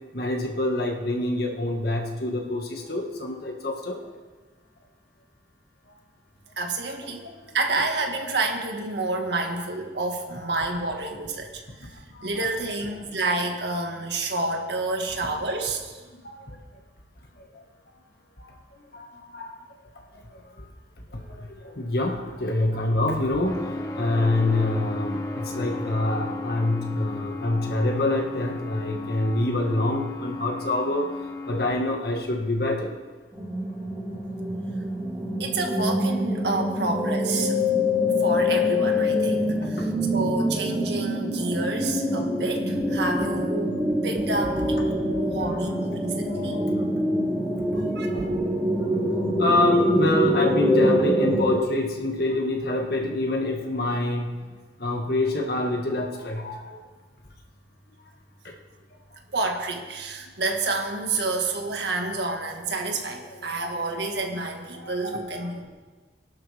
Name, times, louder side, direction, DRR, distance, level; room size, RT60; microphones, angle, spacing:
voice 1, 0.1-4.0 7.3-7.4 9.4-9.5 10.8-10.9 12.2-12.5 16.2-16.6 17.5-17.6 18.4-18.5 18.9-19.6 20.1-20.2 21.1-23.6 23.9-31.1 31.5-32.9 39.8-39.9 45.1-45.6 46.3-46.6 47.7-48.3 49.4-54.3 54.8-56.8 58.4-58.5 63.3-63.5 64.8-65.7, left 2 dB, 60° left, 1 dB, 2.0 m, -26 dB
voice 2, 6.6-7.3 7.5-11.9 12.2-15.9 35.4-37.6 38.2-46.6 47.7-48.2 59.3-65.7, right 2 dB, 75° right, 2 dB, 1.9 m, -29 dB
sound 1, 23.4-31.9, left 2 dB, 20° left, 1.4 m, -34 dB
sound 2, 33.3-51.6, left 1 dB, 10° right, 1.9 m, -25 dB
24.0 x 11.5 x 3.6 m, 1.4 s
head